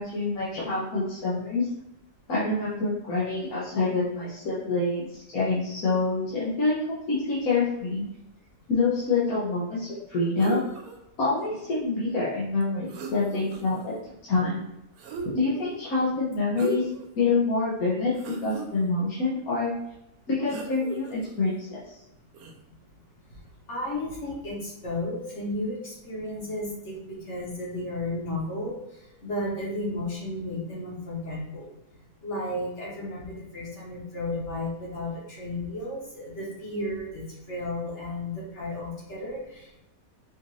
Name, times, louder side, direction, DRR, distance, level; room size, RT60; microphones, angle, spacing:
voice 1, 0.0-1.7 2.3-8.0 8.7-10.6 11.2-13.9 14.2-14.6 15.3-16.9 17.1-19.7 20.3-22.0, left 3 dB, 80° left, -8 dB, 1.4 m, -26 dB
sound 1, 10.4-11.0 12.6-12.7 12.9-13.9 15.0-15.6 16.5-17.1 17.5-17.6 18.1-18.7 20.5-21.3 22.3-22.5, right 2 dB, 85° right, 1.1 m, -36 dB
voice 2, 23.7-28.8 29.2-31.7 32.2-37.2 37.5-39.8, left 1 dB, 55° left, -5 dB, 1.5 m, -33 dB
4.9 x 2.6 x 3.1 m, 0.87 s
omnidirectional pair, 1.5 m